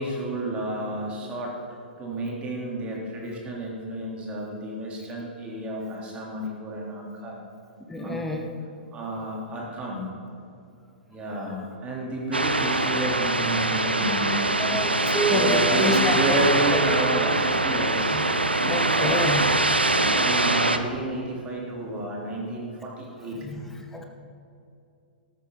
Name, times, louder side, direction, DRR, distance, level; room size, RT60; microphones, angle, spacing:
voice 1, 0.0-1.6 2.0-7.4 8.0-8.2 8.9-10.1 11.1-18.2 19.8-23.4, right 1 dB, 20° right, -3 dB, 3.5 m, -31 dB
voice 2, 7.9-8.4 14.6-16.4 18.1-18.2 18.6-19.5 23.4-23.6 23.9-24.0, left 1 dB, 5° left, 2 dB, 1.4 m, -27 dB
sound 1, 12.3-20.8, right 2 dB, 85° right, 0.8 m, -23 dB
14.0 x 12.5 x 4.0 m, 2.5 s
figure-of-eight pair, 110°, 5 cm